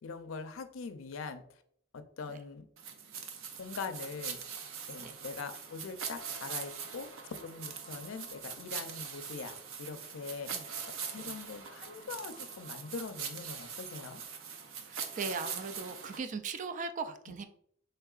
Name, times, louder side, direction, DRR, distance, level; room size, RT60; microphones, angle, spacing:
voice 1, 0.0-1.4 1.9-2.7 3.6-4.4 4.9-10.5 11.0-14.2, left 4 dB, 85° left, 9 dB, 0.5 m, -42 dB
sound 1, 2.8-16.2, right 6 dB, 90° right, 0.5 m, -42 dB
voice 2, 14.9-17.5, right 4 dB, 40° right, 9 dB, 0.3 m, -39 dB
4.6 x 3.3 x 2.4 m, 0.66 s
head